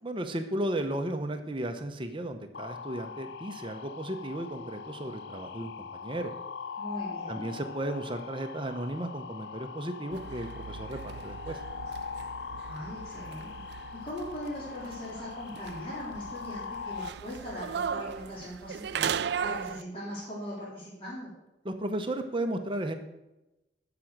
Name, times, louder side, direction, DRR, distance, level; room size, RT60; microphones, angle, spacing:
voice 1, 0.0-6.3 7.3-11.6 21.6-22.9, right 1 dB, 25° right, 6 dB, 0.8 m, -34 dB
sound 1, 2.5-17.1, left 6 dB, 70° left, 0.6 m, -42 dB
voice 2, 6.8-7.4 12.6-21.3, equal, 30° left, -7 dB, 3.7 m, -40 dB
sound 2, 10.1-19.8, right 7 dB, 65° right, 0.3 m, -38 dB
13.5 x 5.9 x 6.5 m, 0.96 s
head